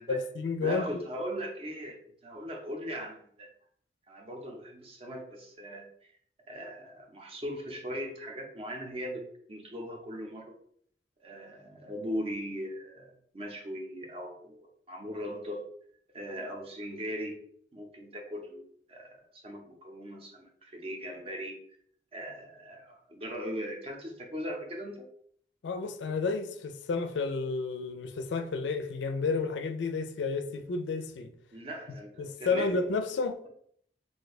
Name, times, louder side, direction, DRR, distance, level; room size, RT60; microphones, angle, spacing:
voice 1, 0.1-1.0 25.6-31.3 32.2-33.4, left 4 dB, 85° left, 0.4 m, -31 dB
voice 2, 0.6-3.5 4.1-6.1 6.5-10.5 11.2-15.6 16.1-17.4 17.7-21.6 22.1-25.1 31.5-32.8, equal, 35° right, 0.6 m, -39 dB
2.6 x 2.2 x 4.0 m
head